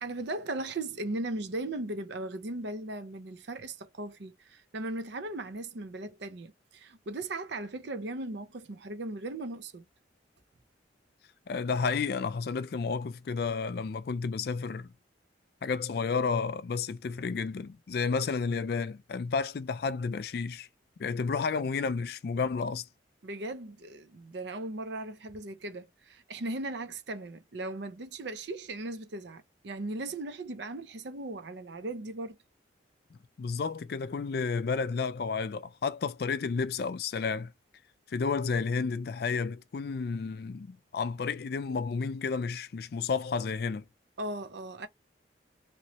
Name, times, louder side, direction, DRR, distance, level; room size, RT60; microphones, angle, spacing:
voice 1, 0.0-9.9 23.2-32.4 44.2-44.9, right 2 dB, 65° right, 0.6 m, -37 dB
voice 2, 11.5-14.9 15.6-20.7 21.0-22.8 33.4-37.5 38.1-43.8, left 5 dB, 55° left, 0.3 m, -31 dB
3.1 x 3.0 x 2.8 m
head